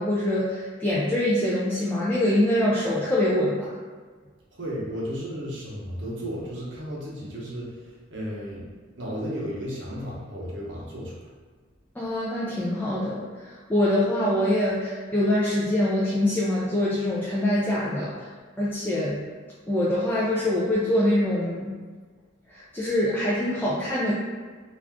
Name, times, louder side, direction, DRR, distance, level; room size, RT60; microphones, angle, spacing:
voice 1, 0.0-3.7 12.0-18.3 18.6-19.2 19.7-21.7 22.5-24.1, left 1 dB, 10° left, -8 dB, 0.3 m, -24 dB
voice 2, 4.5-8.7 8.9-11.2, equal, 70° right, -5 dB, 0.8 m, -34 dB
2.5 x 2.3 x 3.4 m, 1.5 s
head